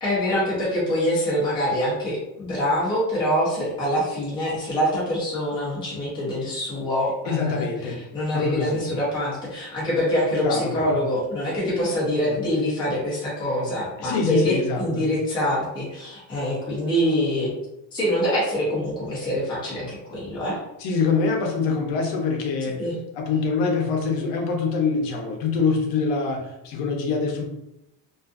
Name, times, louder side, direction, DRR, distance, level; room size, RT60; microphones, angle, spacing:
voice 1, 0.0-7.7 8.1-17.5 17.9-20.6 22.8-22.9, equal, 10° left, -7 dB, 0.6 m, -25 dB
voice 2, 7.3-8.0 8.3-8.8 10.4-10.9 14.0-15.1 20.8-22.8 23.1-27.5, left 4 dB, 65° left, 1 dB, 0.7 m, -24 dB
2.6 x 2.4 x 2.4 m, 0.88 s
cardioid pair, 165°, 44 cm